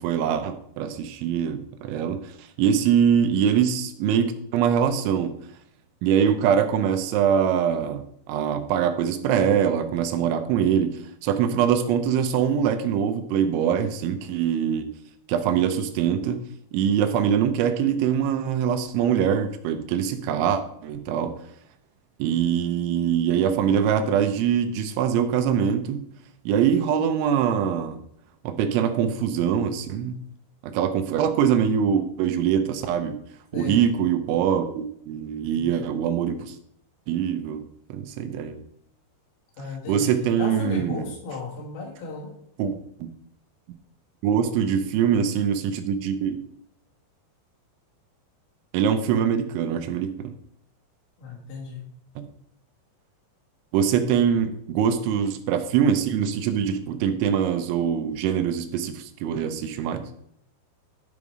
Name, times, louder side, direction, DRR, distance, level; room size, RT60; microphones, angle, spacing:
voice 1, 0.0-5.3 6.0-14.9 15.3-16.4 16.7-21.3 22.2-26.0 26.5-28.0 28.4-30.2 30.6-33.2 33.5-36.6 37.1-37.6 37.9-38.6 39.9-41.1 42.6-43.1 44.2-46.4 48.7-50.3 53.7-60.0, right 8 dB, 85° right, 8 dB, 3.1 m, -23 dB
voice 2, 35.5-35.9 39.6-40.1 40.4-42.3 51.2-51.8, left 4 dB, 70° left, -4 dB, 4.8 m, -34 dB
12.0 x 5.4 x 4.8 m, 0.70 s
omnidirectional pair, 5.4 m